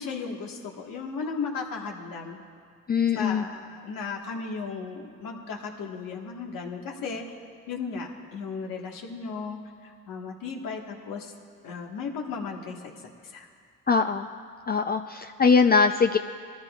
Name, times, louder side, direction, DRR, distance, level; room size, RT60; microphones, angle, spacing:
voice 1, 0.0-2.4 3.1-7.4 7.7-11.3 11.6-13.0 13.2-13.5, left 5 dB, 75° left, 1 dB, 1.6 m, -35 dB
voice 2, 2.9-3.4 13.9-14.3 14.7-16.2, left 5 dB, 30° left, 6 dB, 0.5 m, -21 dB
20.5 x 14.0 x 2.4 m, 2.2 s
supercardioid pair, 70°, 33 cm